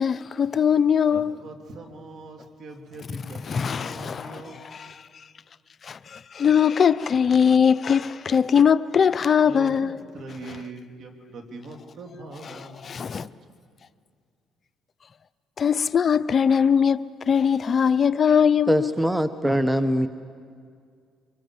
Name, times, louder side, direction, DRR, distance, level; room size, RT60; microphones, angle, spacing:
voice 1, 0.0-1.4 3.5-4.9 5.9-10.0 12.5-13.3 15.6-18.9, left 7 dB, 45° left, 0.6 m, -21 dB
voice 2, 1.1-4.9 9.4-13.3, right 2 dB, 60° right, 3.1 m, -42 dB
voice 3, 18.7-20.1, equal, 10° right, 0.9 m, -22 dB
24.5 x 23.0 x 7.8 m
cardioid pair, 80°, 0 cm